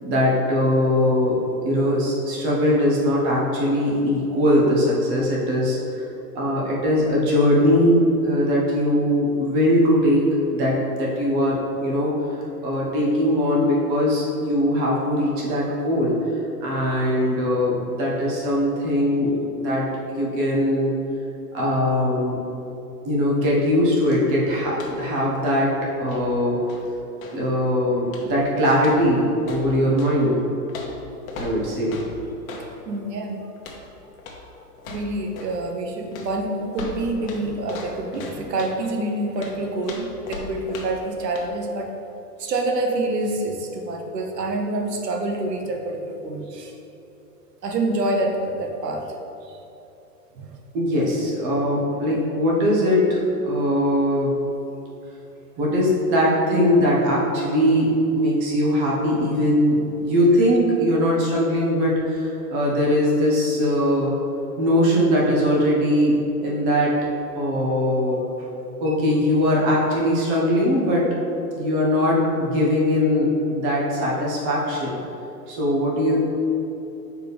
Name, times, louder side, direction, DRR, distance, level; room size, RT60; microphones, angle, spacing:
voice 1, 0.0-6.0 6.3-10.2 10.5-12.1 12.6-20.9 21.5-22.4 23.0-25.7 26.0-26.6 27.3-30.4 31.4-32.0 50.7-54.3 55.6-64.1 64.6-66.9 67.3-68.2 68.8-71.1 71.6-75.0 75.5-76.2, equal, 35° right, -4 dB, 1.4 m, -21 dB
sound 1, 24.7-25.1 25.4-27.5 28.1-28.4 28.8-30.2 30.7-32.7 33.6-33.9 34.2-34.5 34.8-35.6 36.1-38.8 39.4-41.1 41.3-41.5, left 3 dB, 60° left, 1.0 m, -38 dB
voice 2, 32.9-33.4 34.9-41.9 42.4-46.8 47.6-49.1 49.5-49.6 50.3-50.5, right 2 dB, 90° right, 2 dB, 1.1 m, -27 dB
6.2 x 4.8 x 3.4 m, 3.0 s
hypercardioid pair, 155°, 47 cm